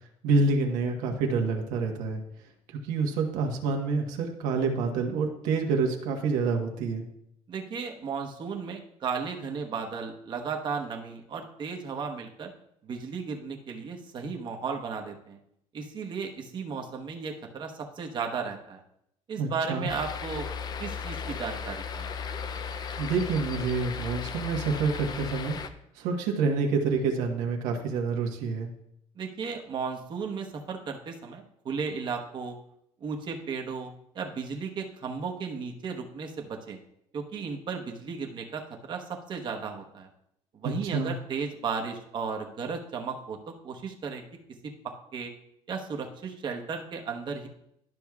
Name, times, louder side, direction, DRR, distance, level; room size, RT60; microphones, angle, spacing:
voice 1, 0.2-2.2 2.7-7.0 19.4-19.9 23.0-25.6 25.9-28.7 40.6-41.1, right 4 dB, 85° right, 2 dB, 1.2 m, -27 dB
voice 2, 7.5-12.5 12.8-15.4 15.7-18.8 19.3-20.5 20.8-22.1 29.2-32.6 33.0-36.8 37.1-40.1 40.5-44.2 44.8-45.3 45.7-47.5, right 5 dB, 40° right, 2 dB, 1.1 m, -35 dB
sound 1, 19.9-25.7, left 6 dB, 35° left, 0.5 m, -36 dB
12.0 x 6.0 x 2.4 m, 0.76 s
cardioid pair, 140°, 12 cm